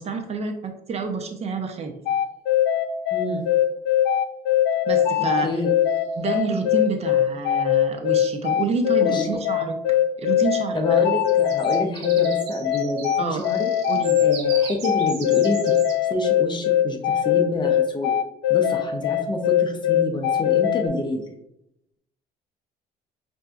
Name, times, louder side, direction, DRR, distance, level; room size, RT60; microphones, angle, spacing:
voice 1, 0.0-1.9 4.9-5.5 6.2-9.7 10.2-11.0 13.2-13.5 13.9-14.2, right 4 dB, 40° right, 4 dB, 0.6 m, -28 dB
sound 1, 2.1-20.9, left 11 dB, 90° left, 0.4 m, -21 dB
voice 2, 3.1-3.4 5.4-5.7 9.0-9.4 10.7-13.7 14.2-15.8 16.1-18.1 18.5-21.2, left 2 dB, 25° left, 3 dB, 0.6 m, -28 dB
sound 2, 5.9-6.4 8.1-8.2 8.5-8.8 11.1-16.0, right 6 dB, 80° right, 1.0 m, -39 dB
5.5 x 2.6 x 2.3 m, 0.80 s
cardioid pair, 110°, 17 cm